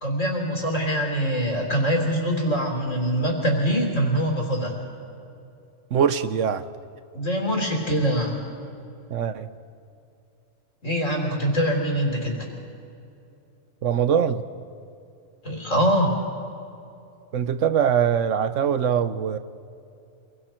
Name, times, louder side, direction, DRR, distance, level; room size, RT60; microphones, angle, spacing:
voice 1, 0.0-4.7 7.1-8.3 10.8-12.5 15.4-16.2, equal, 85° left, 0 dB, 4.0 m, -24 dB
voice 2, 5.9-6.7 9.1-9.5 13.8-14.4 17.3-19.4, right 8 dB, 75° right, 12 dB, 1.2 m, -22 dB
27.0 x 23.0 x 4.5 m, 2.6 s
omnidirectional pair, 1.3 m